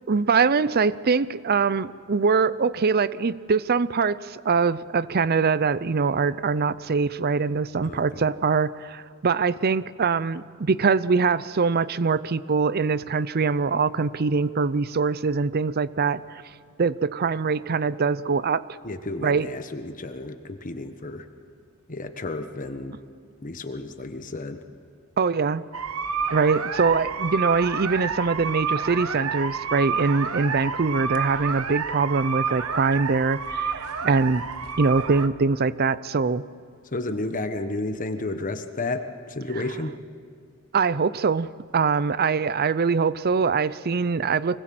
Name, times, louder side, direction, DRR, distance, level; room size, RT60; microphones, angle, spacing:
voice 1, 0.1-16.2 16.8-18.6 19.2-19.5 25.2-25.6 26.3-34.4 34.8-36.4 40.7-41.5 41.7-44.6, right 4 dB, 45° right, 17 dB, 0.5 m, -23 dB
voice 2, 7.8-8.3 18.8-21.3 21.9-23.0 23.4-24.6 36.8-39.9, left 2 dB, 40° left, 7 dB, 1.3 m, -32 dB
sound 1, 25.7-35.3, right 5 dB, 85° right, 1.1 m, -29 dB
25.0 x 20.0 x 7.8 m, 2.2 s
head